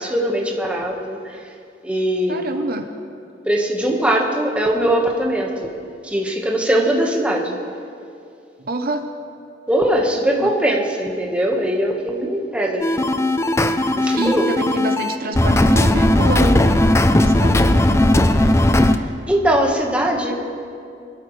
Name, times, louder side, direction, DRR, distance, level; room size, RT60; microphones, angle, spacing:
voice 1, 0.0-1.5 1.8-2.5 3.4-5.7 6.0-7.6 8.0-8.1 9.7-13.1 13.9-14.5 18.4-18.8 19.3-20.3, right 1 dB, 5° right, -1 dB, 1.4 m, -21 dB
voice 2, 2.3-2.9 8.6-9.1 10.4-10.6 14.1-16.8 17.2-17.9, right 2 dB, 55° right, 6 dB, 0.8 m, -26 dB
sound 1, 12.8-19.0, left 1 dB, 15° left, 0.5 m, -16 dB
24.5 x 13.0 x 3.2 m, 2.5 s
head